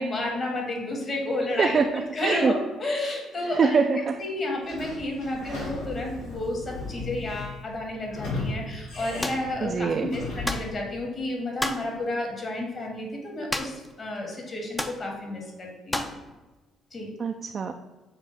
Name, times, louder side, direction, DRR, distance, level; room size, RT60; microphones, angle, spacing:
voice 1, 0.0-3.8 4.2-16.1 16.9-17.1, left 1 dB, 35° left, 0 dB, 1.6 m, -31 dB
voice 2, 1.6-2.5 3.5-4.2 5.4-5.7 9.6-10.1 17.2-17.7, right 5 dB, 45° right, 5 dB, 0.4 m, -24 dB
Sliding door / Squeak, 4.6-10.7, left 2 dB, 80° left, 1.7 m, -36 dB
sound 1, 9.2-9.5 10.4-10.7 11.6-11.9 13.5-13.9 14.2-14.3 14.8-15.0 15.9-16.2, left 1 dB, 10° left, 0.5 m, -30 dB
7.0 x 2.4 x 5.5 m, 1.2 s
cardioid pair, 90°, 0 cm